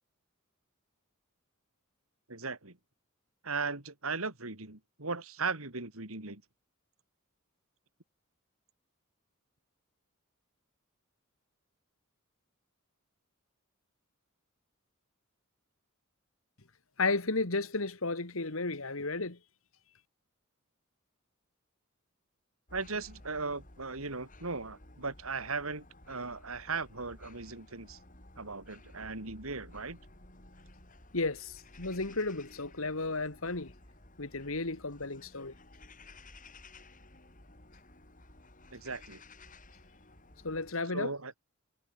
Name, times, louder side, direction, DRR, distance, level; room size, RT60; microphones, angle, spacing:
voice 1, 2.3-2.8 3.4-6.4 22.7-28.0 28.4-30.0 38.7-39.2 40.9-41.4, right 4 dB, 75° right, 3.5 m, -37 dB
voice 2, 17.0-19.4 31.1-33.7 34.2-35.5 40.4-41.1, left 3 dB, 70° left, 2.1 m, -33 dB
sound 1, 22.7-40.7, left 2 dB, 40° left, 7.3 m, -55 dB
head